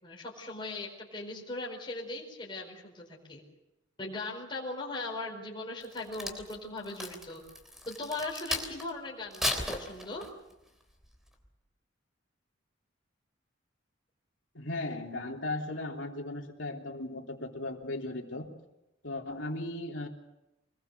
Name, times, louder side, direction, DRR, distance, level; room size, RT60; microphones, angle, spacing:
voice 1, 0.0-3.4 4.0-7.4 7.9-10.2, left 2 dB, 25° left, -2 dB, 4.7 m, -39 dB
Crack, 5.8-8.9 9.3-10.5 11.0-11.3, left 1 dB, ahead, 3.2 m, -35 dB
voice 2, 14.5-18.5 19.0-20.1, left 2 dB, 70° left, 2 dB, 3.3 m, -37 dB
25.5 x 21.0 x 6.9 m, 0.91 s
head